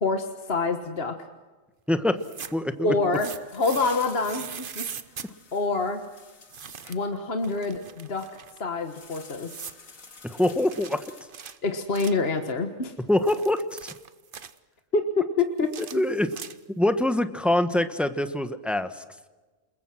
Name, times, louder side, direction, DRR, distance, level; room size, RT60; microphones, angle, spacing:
voice 1, 0.0-1.1 2.8-4.8 5.5-6.1 6.9-8.3 8.6-9.5 11.6-12.9 14.9-16.0, left 3 dB, 50° left, 6 dB, 1.7 m, -26 dB
voice 2, 1.9-2.2 2.5-3.2 10.2-11.0 13.1-13.9 15.8-16.3 16.8-19.0, left 1 dB, ahead, 10 dB, 1.1 m, -25 dB
sound 1, 2.1-2.7 3.1-5.3 6.5-7.1 7.4-8.6 9.4-9.8 10.7-12.3 13.0-14.6 15.6-16.8, right 6 dB, 45° right, 1.0 m, -41 dB
sound 2, 3.0-7.0 8.7-11.7, left 4 dB, 85° left, 2.7 m, -49 dB
29.0 x 21.5 x 6.1 m, 1.3 s
omnidirectional pair, 1.4 m